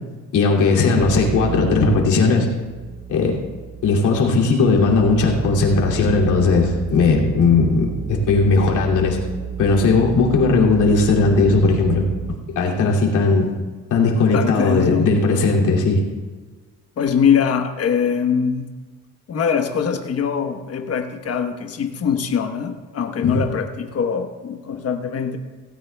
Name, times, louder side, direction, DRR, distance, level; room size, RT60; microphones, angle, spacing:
voice 1, 0.3-2.5 3.1-3.4 3.8-9.2 9.6-13.5 13.9-16.0 23.2-23.4, left 3 dB, 85° left, -2 dB, 2.8 m, -17 dB
sound 1, 1.0-2.2 2.6-12.4, right 9 dB, 40° right, 0.6 m, -31 dB
voice 2, 14.3-15.1 17.0-18.7 19.3-25.4, left 7 dB, 55° left, 5 dB, 1.2 m, -22 dB
17.5 x 16.5 x 2.3 m, 1.4 s
cardioid pair, 90°, 30 cm